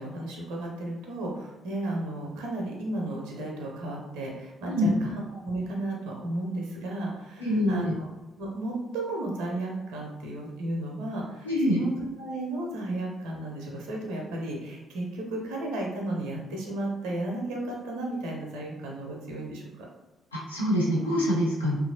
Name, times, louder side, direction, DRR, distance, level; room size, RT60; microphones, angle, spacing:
voice 1, 0.0-8.1 8.4-19.9, right 1 dB, 65° right, -1 dB, 0.5 m, -34 dB
voice 2, 7.4-7.9 11.4-11.8 20.3-21.7, equal, 85° left, -6 dB, 0.5 m, -25 dB
2.8 x 2.3 x 2.6 m, 1.1 s
figure-of-eight pair, 40°, 0 cm